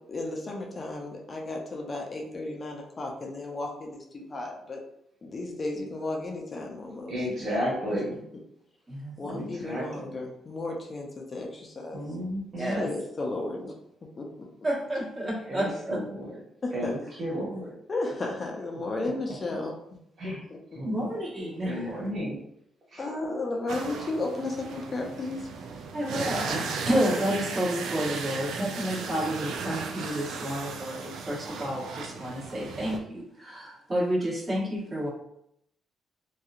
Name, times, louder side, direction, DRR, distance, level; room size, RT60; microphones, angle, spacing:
voice 1, 0.0-4.8 5.2-7.1 7.9-8.0 9.2-12.0 12.6-13.7 14.2-14.3 16.6-16.9 17.9-20.0 20.2-20.8 23.0-25.5 28.3-28.4 29.2-29.3, left 2 dB, 35° left, 1 dB, 0.5 m, -34 dB
voice 2, 7.1-8.1 9.2-10.2 11.9-12.9 15.4-16.4 16.7-17.7 19.0-19.1 20.2-20.4 20.7-21.1 21.6-22.4 22.9-23.1, equal, 50° right, -6 dB, 1.4 m, -33 dB
voice 3, 8.9-9.5 12.6-12.9 14.6-16.0 17.4-17.6 20.8-21.9 25.9-35.1, equal, 30° right, -5 dB, 1.2 m, -30 dB
sound 1, 23.7-33.0, right 5 dB, 75° right, 0.3 m, -36 dB
2.8 x 2.3 x 2.4 m, 0.76 s
cardioid pair, 90°, 0 cm